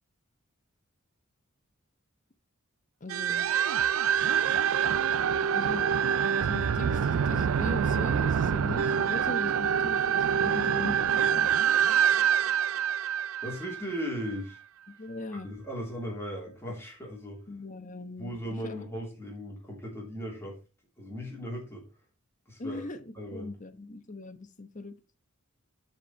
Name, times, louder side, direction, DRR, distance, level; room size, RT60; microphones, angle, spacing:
voice 1, 3.0-3.5 5.5-5.9 6.4-11.5 15.0-15.5 17.5-18.3 18.6-18.8 22.6-24.9, left 2 dB, 35° left, 1.0 m, -39 dB
sound 1, 3.1-14.3, right 8 dB, 80° right, 0.4 m, -26 dB
voice 2, 13.4-14.6 15.3-17.4 18.2-20.6 21.0-21.8 22.5-22.9 23.1-23.6, equal, 10° left, 2.9 m, -37 dB
11.5 x 4.5 x 4.7 m
head